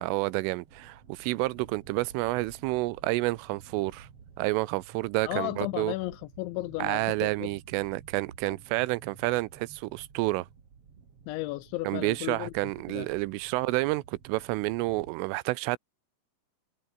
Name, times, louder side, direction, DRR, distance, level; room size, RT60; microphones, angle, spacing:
voice 1, 0.0-4.1 4.4-5.9 6.8-10.5 11.8-15.8, right 20 dB, 85° right, 3.3 m, -29 dB
sound 1, 0.6-15.1, right 6 dB, 35° right, 2.8 m, -52 dB
voice 2, 5.2-7.5 8.5-8.6 11.3-12.5 12.9-13.1, left 19 dB, 80° left, 2.7 m, -34 dB
omnidirectional pair, 5.8 m